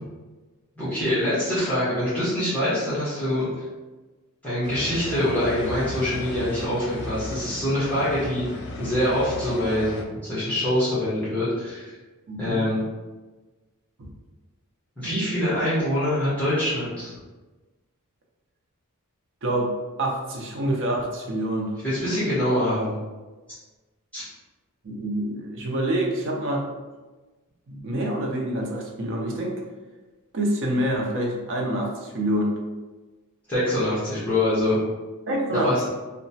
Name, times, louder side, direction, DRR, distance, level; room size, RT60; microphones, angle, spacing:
voice 1, 0.8-3.5 4.4-11.9 12.4-12.8 15.0-17.1 21.8-23.0 24.1-24.2 33.5-34.8 35.5-35.8, left 1 dB, 5° left, -12 dB, 0.9 m, -24 dB
sound 1, 4.6-10.0, left 2 dB, 50° left, 0.3 m, -35 dB
voice 2, 12.3-12.6 14.0-14.1 15.0-15.4 19.4-21.8 24.8-26.7 27.7-29.6 30.3-32.5 35.3-35.7, right 1 dB, 60° right, -1 dB, 0.6 m, -27 dB
2.9 x 2.1 x 2.7 m, 1.2 s
head